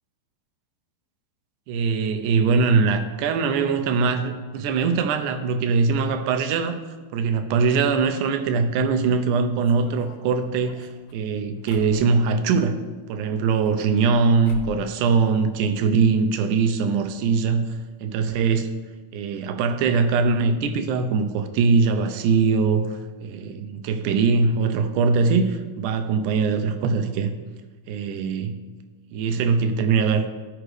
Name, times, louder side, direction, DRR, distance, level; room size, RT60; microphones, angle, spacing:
voice 1, 1.7-6.8 7.1-12.8 13.1-17.7 18.0-18.7 19.1-27.3 27.9-28.5 29.1-30.3, right 5 dB, 80° right, 7 dB, 1.9 m, -22 dB
sound 1, 9.6-12.5 13.4-14.2 14.4-14.9 15.2-16.0 16.3-16.4 16.6-16.7 17.4-17.5 17.8-17.9, left 4 dB, 65° left, 1.5 m, -43 dB
15.0 x 5.0 x 3.2 m, 1.4 s
omnidirectional pair, 4.2 m